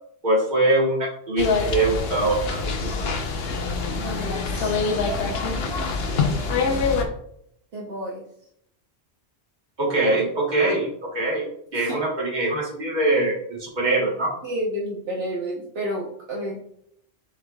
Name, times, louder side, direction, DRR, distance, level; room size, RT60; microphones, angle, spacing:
voice 1, 0.2-1.4 1.7-3.1 9.8-11.5 11.7-14.3, right 2 dB, 45° right, -3 dB, 1.5 m, -23 dB
sound 1, 1.4-7.0, left 4 dB, 70° left, 0.9 m, -25 dB
voice 2, 3.9-6.9 7.7-8.2 11.2-11.3 11.7-12.0 14.4-16.6, right 1 dB, 70° right, -3 dB, 1.1 m, -32 dB
6.6 x 3.5 x 2.3 m, 0.72 s
omnidirectional pair, 1.1 m